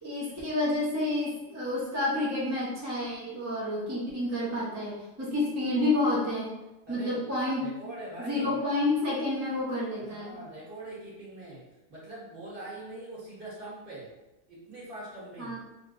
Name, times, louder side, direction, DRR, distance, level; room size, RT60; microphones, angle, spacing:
voice 1, 0.0-6.5 6.9-7.7 8.3-10.4 15.4-15.6, left 2 dB, 15° right, -7 dB, 0.7 m, -29 dB
voice 2, 6.9-7.3 7.6-8.5 10.0-11.6 11.9-14.1 14.5-15.6, right 1 dB, 45° right, -7 dB, 1.3 m, -43 dB
3.0 x 2.4 x 3.8 m, 0.98 s
omnidirectional pair, 1.3 m